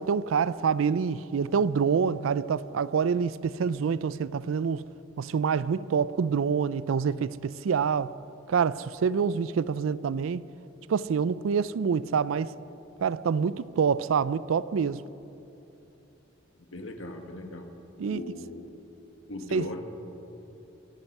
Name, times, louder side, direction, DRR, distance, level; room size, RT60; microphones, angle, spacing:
voice 1, 0.0-4.8 5.2-8.1 8.5-10.4 10.9-12.5 13.0-15.0 18.0-18.2 19.5-19.7, right 6 dB, 85° right, 0.4 m, -26 dB
voice 2, 16.7-17.7 18.1-18.7 19.3-19.8, left 2 dB, 80° left, 1.6 m, -38 dB
22.0 x 10.5 x 5.5 m
head